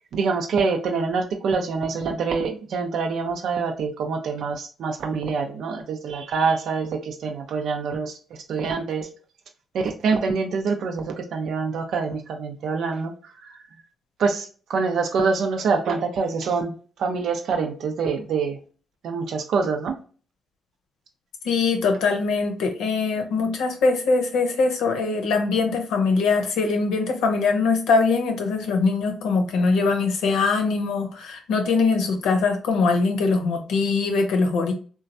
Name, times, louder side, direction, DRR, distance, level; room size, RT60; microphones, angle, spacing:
voice 1, 0.1-8.1 8.5-9.1 9.7-13.1 14.2-16.7 17.0-18.6 19.0-20.0, right 5 dB, 75° right, 5 dB, 0.5 m, -25 dB
voice 2, 21.4-34.7, left 4 dB, 80° left, 4 dB, 0.7 m, -22 dB
3.1 x 2.2 x 2.6 m, 0.39 s
supercardioid pair, 55°, 0 cm